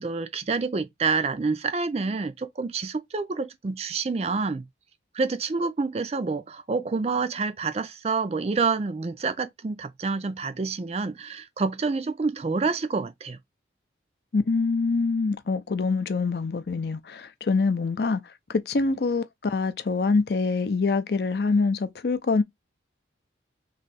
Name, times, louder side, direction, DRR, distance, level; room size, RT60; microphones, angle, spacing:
voice 1, 0.0-4.7 5.1-13.4, right 4 dB, 35° right, 0.4 m, -28 dB
voice 2, 14.3-18.2 18.5-22.4, left 4 dB, 60° left, 0.5 m, -25 dB
3.2 x 2.6 x 4.0 m
head